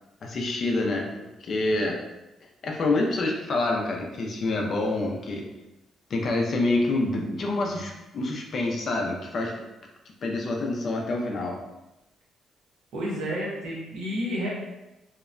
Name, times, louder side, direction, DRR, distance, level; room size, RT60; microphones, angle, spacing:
voice 1, 0.2-1.1 1.4-2.0 2.6-5.4 6.1-9.5 10.2-11.6, left 2 dB, 40° left, 0 dB, 0.4 m, -27 dB
voice 2, 12.9-14.5, equal, 85° right, -3 dB, 0.8 m, -30 dB
2.8 x 2.1 x 2.4 m, 0.98 s
cardioid pair, 165°, 0 cm